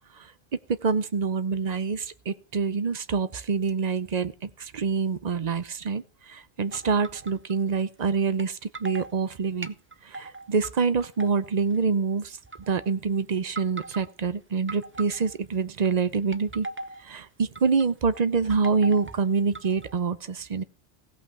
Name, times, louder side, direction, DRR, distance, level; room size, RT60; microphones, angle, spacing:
voice 1, 0.7-9.7 10.0-12.4 12.7-16.7 17.0-20.6, right 5 dB, 45° right, 14 dB, 0.8 m, -26 dB
sound 1, 6.7-7.5 8.4-8.5 8.7-9.1 9.6-10.7 11.0-11.8 12.4-12.9 13.4-14.1 14.7-15.5 16.2-17.0 17.6-17.9 18.2-20.0, right 2 dB, 20° right, 0.4 m, -39 dB
16.0 x 5.8 x 6.8 m, 0.37 s
omnidirectional pair, 1.1 m